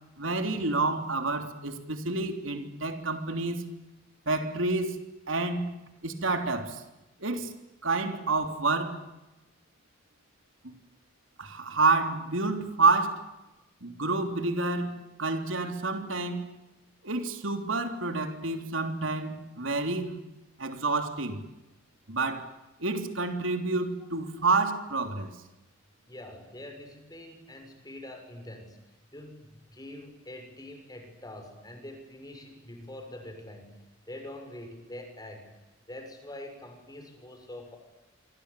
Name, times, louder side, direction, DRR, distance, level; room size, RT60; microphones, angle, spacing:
voice 1, 0.2-3.6 4.3-5.0 5.3-5.7 6.0-6.8 7.2-7.5 7.8-9.0 10.6-10.7 11.4-13.2 13.8-16.5 17.0-20.2 20.6-21.4 22.1-22.5 22.8-25.3, right 3 dB, 85° right, 3.5 m, -28 dB
voice 2, 26.1-33.8 34.1-35.5 35.9-37.8, left 1 dB, 20° left, 6.6 m, -45 dB
27.0 x 25.0 x 8.5 m
head